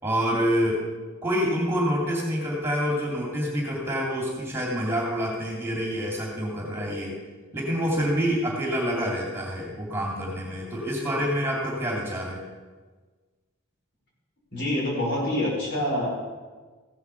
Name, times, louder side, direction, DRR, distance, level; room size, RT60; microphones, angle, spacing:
voice 1, 0.0-0.8 1.2-7.2 7.5-12.4, equal, 10° right, -3 dB, 2.5 m, -27 dB
voice 2, 14.5-16.1, left 1 dB, 55° left, -3 dB, 5.2 m, -26 dB
15.5 x 8.0 x 7.0 m, 1.4 s
head